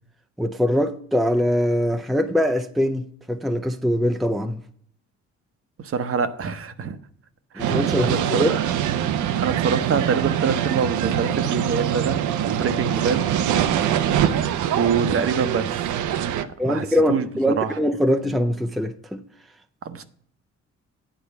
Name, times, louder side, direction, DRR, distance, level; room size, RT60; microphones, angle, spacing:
voice 1, 0.4-4.6 7.6-8.6 16.6-19.2, equal, ahead, 0.5 m, -22 dB
voice 2, 5.8-7.0 7.5-8.5 9.4-13.4 14.8-17.3 17.6-17.8 19.8-20.0, right 6 dB, 45° right, 0.8 m, -26 dB
sound 1, 7.6-16.4, right 10 dB, 80° right, 0.7 m, -23 dB
9.1 x 4.5 x 6.7 m
cardioid pair, 90°, 30 cm